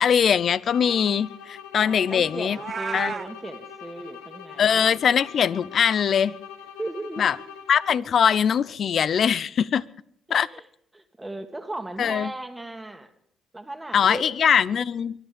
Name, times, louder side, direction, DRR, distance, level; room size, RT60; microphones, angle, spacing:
voice 1, 0.0-2.6 2.9-3.1 4.6-6.3 7.2-7.4 7.7-9.8 10.3-10.5 12.0-12.3 13.9-15.1, left 8 dB, 60° left, 21 dB, 0.6 m, -21 dB
sound 1, 0.7-8.2, left 7 dB, 85° left, 1.4 m, -43 dB
voice 2, 1.8-4.8 6.8-7.4 10.3-10.7 10.9-13.1 13.5-14.5, right 1 dB, 15° right, 7 dB, 1.9 m, -36 dB
Meow, 2.5-3.3, right 6 dB, 50° right, 0.9 m, -32 dB
23.0 x 11.0 x 5.2 m, 0.65 s
hypercardioid pair, 50°, 0 cm